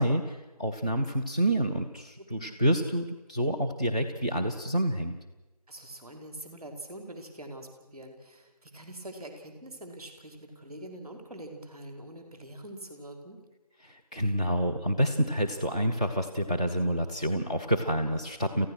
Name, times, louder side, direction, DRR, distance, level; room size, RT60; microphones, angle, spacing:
voice 1, 0.0-5.1 13.8-18.7, right 1 dB, 10° left, -3 dB, 0.8 m, -28 dB
voice 2, 2.2-2.5 5.7-13.4, right 1 dB, 10° right, 4 dB, 4.5 m, -44 dB
28.0 x 15.5 x 6.4 m, 1.1 s
figure-of-eight pair, 165°, 20 cm